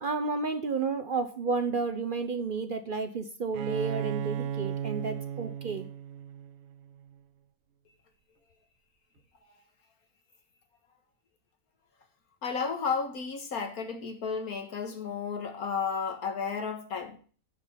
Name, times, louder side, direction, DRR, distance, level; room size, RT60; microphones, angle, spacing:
voice 1, 0.0-5.9, right 4 dB, 50° right, 0.7 m, -31 dB
Bowed string instrument, 3.5-7.2, right 9 dB, 70° right, 1.0 m, -36 dB
voice 2, 12.4-17.2, left 5 dB, 90° left, 2.0 m, -33 dB
9.2 x 5.2 x 5.7 m
omnidirectional pair, 1.5 m